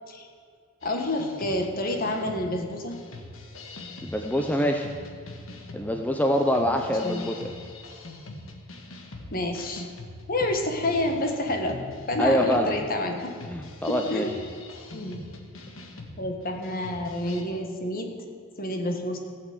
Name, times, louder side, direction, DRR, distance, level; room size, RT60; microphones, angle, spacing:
sound 1, 0.8-17.4, left 2 dB, 70° left, 1.4 m, -43 dB
voice 1, 0.8-3.0 6.6-7.3 9.3-9.8 10.3-11.8 12.1-13.4 13.9-14.4 14.9-15.2 16.2-18.1 18.6-19.2, left 1 dB, 45° left, 3 dB, 1.5 m, -29 dB
voice 2, 4.0-4.9 5.7-7.5 12.2-12.7 13.5-14.3, equal, 10° left, 3 dB, 0.6 m, -25 dB
16.0 x 6.1 x 8.0 m, 2.1 s
head